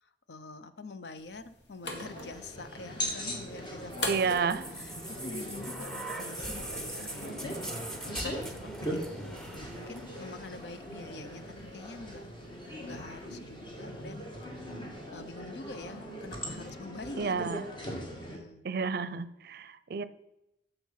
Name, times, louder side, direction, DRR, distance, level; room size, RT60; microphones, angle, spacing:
voice 1, 0.0-12.2 12.6-14.5 15.1-18.6, left 3 dB, 65° left, 12 dB, 0.6 m, -46 dB
sound 1, 1.2-6.2, left 2 dB, 85° left, 1.8 m, -42 dB
sound 2, 1.8-18.4, equal, 30° left, 1.7 m, -40 dB
sound 3, 3.9-11.8 12.8-12.9, right 1 dB, 5° left, 0.9 m, -42 dB
voice 2, 4.1-4.6 17.2-17.6 18.6-20.0, right 5 dB, 60° right, 15 dB, 0.5 m, -30 dB
7.3 x 6.6 x 5.7 m, 0.88 s
head